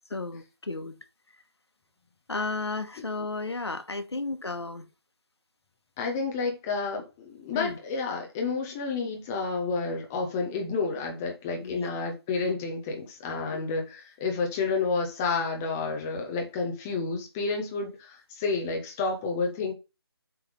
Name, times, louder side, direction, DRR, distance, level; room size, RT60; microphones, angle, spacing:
voice 1, 0.1-1.0 2.3-4.9 7.5-7.8 11.6-11.9 13.5-13.6, left 3 dB, 85° left, 1.2 m, -33 dB
voice 2, 6.0-19.7, left 4 dB, 5° left, 0.3 m, -30 dB
7.5 x 3.2 x 5.2 m
figure-of-eight pair, 160°, 13 cm